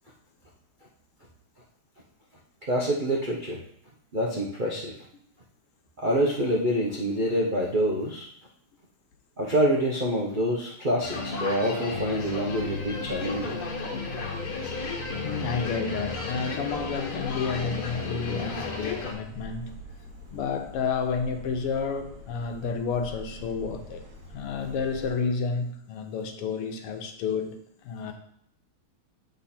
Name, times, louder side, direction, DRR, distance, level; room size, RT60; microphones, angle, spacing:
voice 1, 2.7-3.6 4.1-4.9 6.0-8.3 9.4-13.6, equal, 75° right, -3 dB, 0.4 m, -26 dB
sound 1, 11.0-19.1, left 4 dB, 70° left, 2.0 m, -33 dB
sound 2, 12.5-25.2, equal, 40° right, 1.4 m, -44 dB
voice 2, 15.2-19.7 20.3-24.0 24.3-28.1, left 5 dB, 85° left, 5 dB, 1.8 m, -30 dB
8.1 x 4.0 x 4.3 m, 0.68 s
omnidirectional pair, 2.4 m